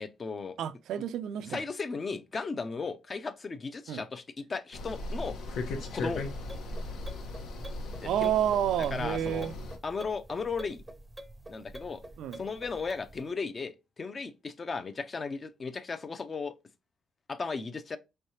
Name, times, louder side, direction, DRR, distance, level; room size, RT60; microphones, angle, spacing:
voice 1, 0.0-0.6 1.5-5.4 5.9-6.2 8.0-8.3 8.9-9.5 9.8-10.8 11.5-12.0 12.3-16.6 17.3-18.0, left 4 dB, 35° left, 0.5 m, -36 dB
voice 2, 0.6-1.6 3.9-4.0 8.0-9.5 12.2-12.4, right 10 dB, 80° right, 0.3 m, -29 dB
sound 1, 4.7-9.8, left 2 dB, 80° left, 0.9 m, -37 dB
sound 2, 6.4-13.3, right 1 dB, 10° right, 0.6 m, -48 dB
4.6 x 3.3 x 2.7 m
cardioid pair, 90°, 0 cm